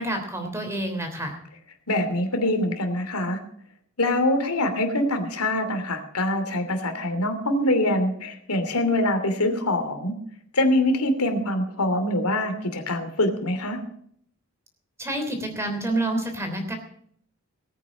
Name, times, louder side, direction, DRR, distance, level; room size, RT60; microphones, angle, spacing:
voice 1, 0.0-1.4 15.0-16.7, right 1 dB, 10° right, 4 dB, 3.2 m, -28 dB
voice 2, 1.9-3.4 4.0-10.1 10.5-13.8, left 1 dB, 85° left, 6 dB, 2.8 m, -24 dB
19.0 x 9.2 x 6.1 m, 0.64 s
head